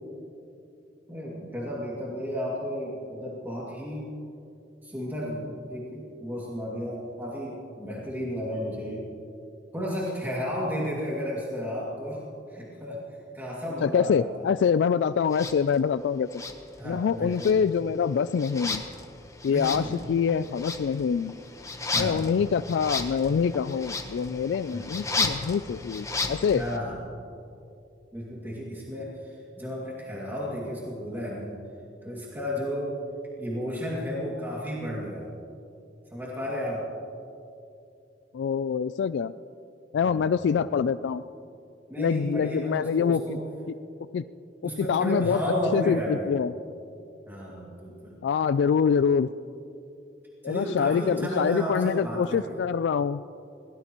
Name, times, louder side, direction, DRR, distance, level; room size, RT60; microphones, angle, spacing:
voice 1, 1.1-4.1 4.8-9.1 9.7-12.2 12.5-13.0 13.3-14.5 16.8-17.5 19.4-20.1 21.9-22.2 24.7-24.9 26.5-27.0 28.1-31.5 32.0-33.0 33.4-35.3 36.1-36.9 40.0-40.6 41.9-43.4 44.6-46.3 47.3-48.2 50.4-52.6, equal, 10° right, -6 dB, 2.3 m, -33 dB
voice 2, 13.8-16.3 16.8-18.8 19.4-21.4 22.0-26.6 38.3-39.3 39.9-41.2 42.0-43.2 44.1-44.2 44.6-46.5 48.2-49.3 50.4-53.2, left 6 dB, 70° left, 13 dB, 0.3 m, -25 dB
sound 1, 15.3-15.6 16.3-17.1 17.3-26.8, left 3 dB, 15° left, 1.0 m, -34 dB
23.5 x 17.5 x 3.0 m, 2.6 s
head